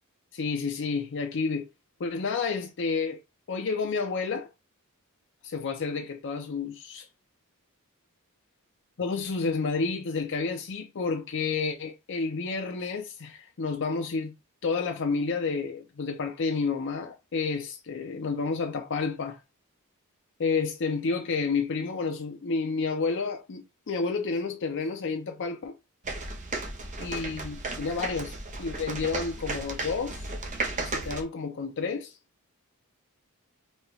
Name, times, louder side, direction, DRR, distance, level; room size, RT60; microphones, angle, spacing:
voice 1, 0.3-1.7 2.0-3.2 3.5-4.5 5.4-7.1 9.0-14.3 14.6-19.4 20.4-25.7 27.0-30.3 30.8-32.2, left 4 dB, 55° left, 0.6 m, -30 dB
sound 1, 26.0-31.2, right 3 dB, 35° right, 0.7 m, -34 dB
4.2 x 2.3 x 3.1 m
head